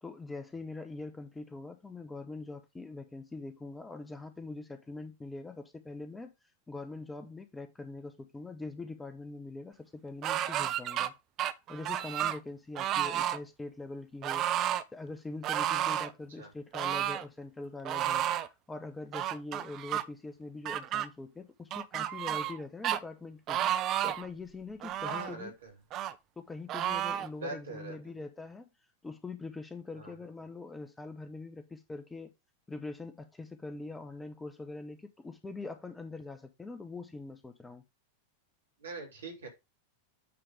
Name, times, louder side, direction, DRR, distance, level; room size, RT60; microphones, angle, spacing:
voice 1, 0.0-6.3 6.7-11.1 11.7-14.5 14.9-18.3 18.7-23.6 24.0-25.5 26.4-28.7 29.0-32.3 32.7-37.8, left 3 dB, 10° left, 0.9 m, -43 dB
sound 1, 10.2-11.1 11.4-12.4 12.8-13.4 14.2-14.8 15.4-16.1 16.7-17.2 17.9-18.5 19.1-20.0 20.7-21.1 21.7-22.6 22.8-23.0 23.5-24.3 24.8-25.3 25.9-26.1 26.7-27.3, right 11 dB, 35° right, 0.6 m, -31 dB
voice 2, 25.0-25.7 27.4-28.0 29.9-30.1 38.8-39.5, right 3 dB, 65° right, 2.9 m, -42 dB
8.6 x 3.5 x 4.9 m
figure-of-eight pair, 90°, 0 cm